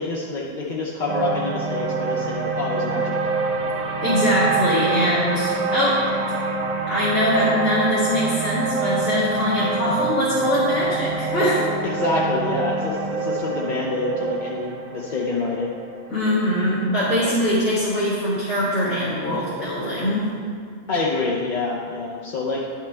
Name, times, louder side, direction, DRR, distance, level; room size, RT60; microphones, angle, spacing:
voice 1, 0.0-3.2 9.8-9.9 11.8-15.7 20.9-22.7, left 3 dB, 50° left, -3 dB, 0.6 m, -26 dB
sound 1, 1.1-17.3, right 4 dB, 45° right, 0.5 m, -26 dB
voice 2, 4.0-6.0 6.9-11.7 16.1-20.3, left 1 dB, 75° left, -11 dB, 2.3 m, -22 dB
10.0 x 6.0 x 3.4 m, 2.2 s
omnidirectional pair, 1.4 m